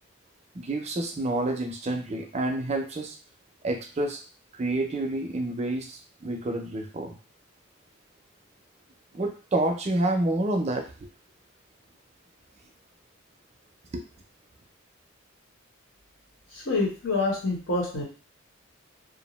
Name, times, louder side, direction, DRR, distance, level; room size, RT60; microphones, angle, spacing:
voice 1, 0.5-3.1 3.6-4.2 4.6-7.1 9.1-11.1 13.9-14.1, right 2 dB, 35° right, 4 dB, 0.4 m, -28 dB
voice 2, 16.5-18.0, left 3 dB, 75° left, -3 dB, 1.1 m, -27 dB
2.5 x 2.0 x 3.0 m, 0.36 s
head